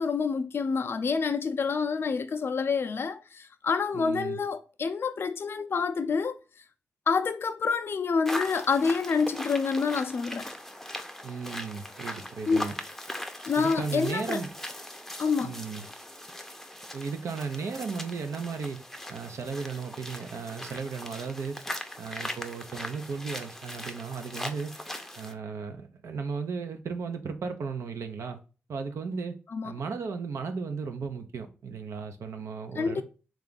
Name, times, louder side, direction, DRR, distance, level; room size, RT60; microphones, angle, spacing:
voice 1, 0.0-6.4 7.1-10.5 12.5-12.7 13.4-14.4 15.2-15.6 29.5-29.7 32.8-33.0, left 5 dB, 55° left, 0.3 m, -27 dB
voice 2, 3.9-4.4 11.2-12.7 13.5-14.5 15.4-15.9 16.9-18.8 19.1-21.5 22.0-24.7 25.2-28.4 28.7-29.3 29.6-33.1, right 5 dB, 75° right, 0.6 m, -35 dB
sound 1, 8.3-25.3, left 1 dB, 5° left, 0.5 m, -40 dB
3.4 x 2.4 x 3.8 m
cardioid pair, 50°, 5 cm